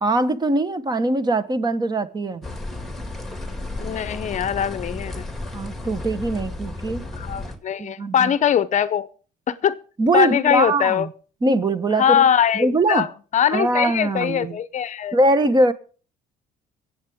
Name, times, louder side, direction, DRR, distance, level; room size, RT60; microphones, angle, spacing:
voice 1, 0.0-2.4 5.5-7.0 7.8-8.3 10.0-11.1 11.4-12.2 12.5-13.1 13.5-14.6 15.1-15.7, right 2 dB, 25° right, 13 dB, 1.0 m, -21 dB
sound 1, 2.4-7.6, left 2 dB, ahead, 2.0 m, -33 dB
voice 2, 3.8-5.3 7.2-9.1 9.5-9.8 10.1-11.1 11.9-13.1 13.3-15.2, left 9 dB, 45° left, 16 dB, 0.7 m, -21 dB
24.0 x 8.2 x 3.6 m, 0.39 s
cardioid pair, 110°, 17 cm